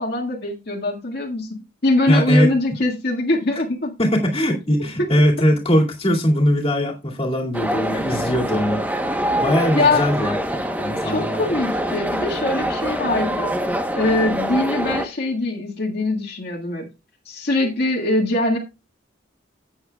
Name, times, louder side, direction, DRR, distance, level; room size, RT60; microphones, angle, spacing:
voice 1, 0.0-3.9 9.7-10.1 11.0-13.5 13.9-16.9 17.2-18.6, left 2 dB, 60° left, 1.9 m, -22 dB
voice 2, 2.1-2.5 4.0-8.8 9.4-10.4 10.8-11.4, equal, 30° left, 2.4 m, -20 dB
sound 1, 7.5-15.1, equal, 10° right, 1.0 m, -25 dB
13.5 x 8.6 x 2.3 m
head